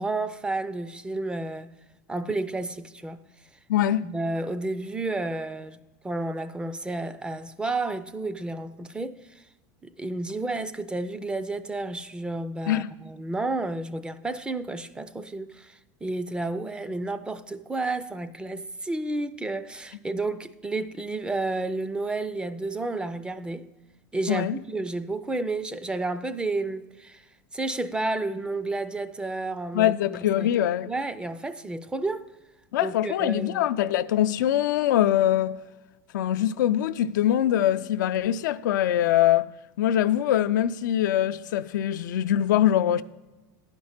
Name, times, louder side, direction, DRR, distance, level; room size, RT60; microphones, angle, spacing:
voice 1, 0.0-1.7 2.1-3.2 4.0-5.8 6.0-9.2 9.8-23.7 24.1-27.2 27.5-30.5 30.9-32.3 32.8-33.7, right 2 dB, 10° right, 0.4 m, -31 dB
voice 2, 3.7-4.1 12.7-12.9 24.3-24.5 29.7-30.9 32.7-35.6 36.1-39.5 39.8-43.0, left 11 dB, 90° left, 0.4 m, -23 dB
10.5 x 5.2 x 7.2 m
supercardioid pair, 120°, 10 cm